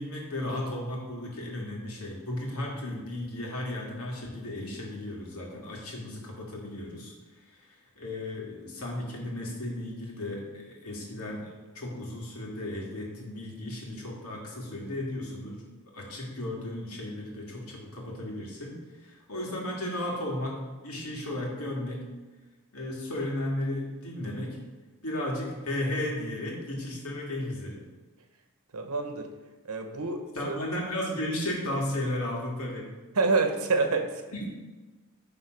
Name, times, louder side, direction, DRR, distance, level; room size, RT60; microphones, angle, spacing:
voice 1, 0.0-7.1 7.4-15.6 15.9-18.8 19.0-22.1 22.7-24.6 25.0-27.9 30.4-32.9 34.3-34.5, left 1 dB, 75° left, -2 dB, 2.1 m, -34 dB
voice 2, 28.7-29.3 29.6-30.6 33.1-34.2, right 3 dB, 80° right, 6 dB, 1.0 m, -27 dB
10.5 x 3.8 x 5.1 m, 1.2 s
head